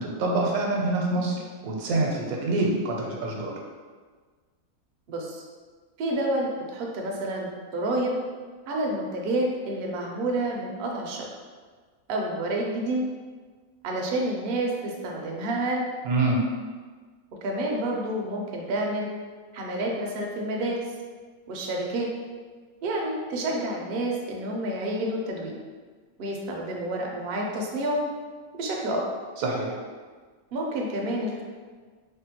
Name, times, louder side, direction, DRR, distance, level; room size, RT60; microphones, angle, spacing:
voice 1, 0.0-3.6 16.0-16.4 29.4-29.8, right 2 dB, 85° right, -1 dB, 1.0 m, -26 dB
voice 2, 5.1-5.4 6.0-8.2 8.7-11.3 12.1-13.0 13.8-15.9 17.4-19.1 19.5-20.8 21.5-22.1 22.8-25.5 26.2-28.0 28.6-29.0 30.5-31.4, right 1 dB, 65° right, -1 dB, 0.6 m, -29 dB
3.5 x 2.2 x 2.8 m, 1.5 s
omnidirectional pair, 1.5 m